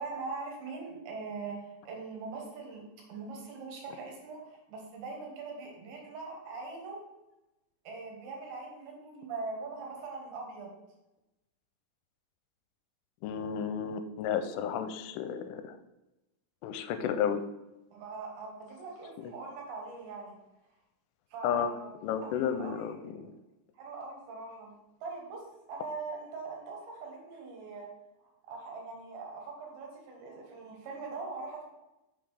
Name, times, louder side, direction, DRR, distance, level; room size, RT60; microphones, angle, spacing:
voice 1, 0.0-2.8 3.1-7.0 7.9-10.7 17.9-20.3 21.3-23.3 23.7-25.4 25.7-27.9 28.2-31.6, right 4 dB, 70° right, 0 dB, 3.7 m, -42 dB
voice 2, 13.2-15.8 16.6-17.4 19.2-19.3 21.4-21.7 22.0-23.3, left 8 dB, 85° left, 9 dB, 3.0 m, -32 dB
7.2 x 4.0 x 6.3 m, 0.95 s
omnidirectional pair, 5.6 m